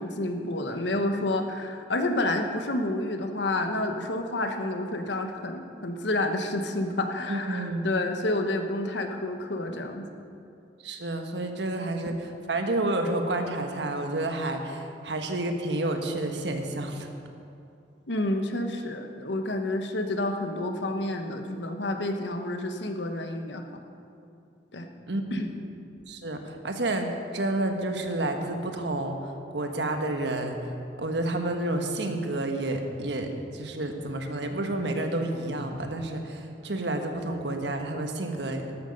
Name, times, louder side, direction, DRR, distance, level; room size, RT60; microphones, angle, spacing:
voice 1, 0.0-10.1 18.1-23.6 24.7-24.9 25.3-25.5, left 1 dB, 80° left, 5 dB, 1.1 m, -29 dB
voice 2, 7.3-7.9 10.8-17.1 25.1-25.4 26.1-30.7 31.0-38.7, right 2 dB, 75° right, 4 dB, 1.3 m, -30 dB
12.5 x 12.0 x 5.4 m, 2.6 s
head